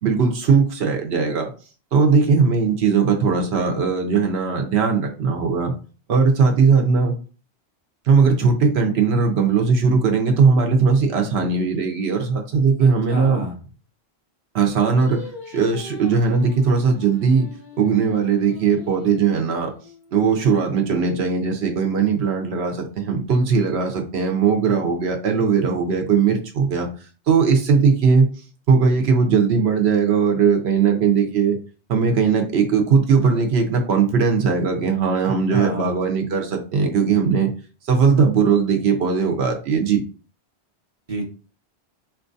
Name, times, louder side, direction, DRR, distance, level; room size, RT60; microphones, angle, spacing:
voice 1, 0.0-1.5 1.9-5.7 6.1-7.2 8.1-13.5 14.5-15.2 15.5-17.5 17.8-19.7 20.1-26.9 27.3-28.3 28.7-31.6 31.9-37.5 37.9-40.0, right 5 dB, 75° right, 4 dB, 0.9 m, -19 dB
voice 2, 12.8-13.6 35.5-35.9 41.1-41.2, right 2 dB, 40° right, 1 dB, 0.8 m, -27 dB
Singing, 14.9-20.2, left 2 dB, 25° left, 0.6 m, -42 dB
4.4 x 2.3 x 2.6 m, 0.37 s
omnidirectional pair, 1.1 m